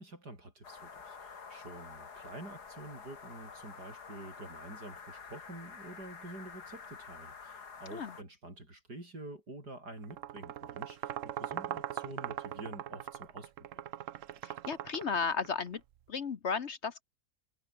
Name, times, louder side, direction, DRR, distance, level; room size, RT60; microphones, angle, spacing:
voice 1, 0.0-13.5, right 2 dB, 85° right, 8.9 m, -48 dB
sound 1, 0.6-8.2, left 5 dB, 80° left, 2.9 m, -49 dB
sound 2, 10.0-15.8, right 11 dB, 60° right, 1.0 m, -41 dB
voice 2, 14.4-15.8 16.1-17.0, left 5 dB, 50° left, 1.2 m, -34 dB
omnidirectional pair, 1.7 m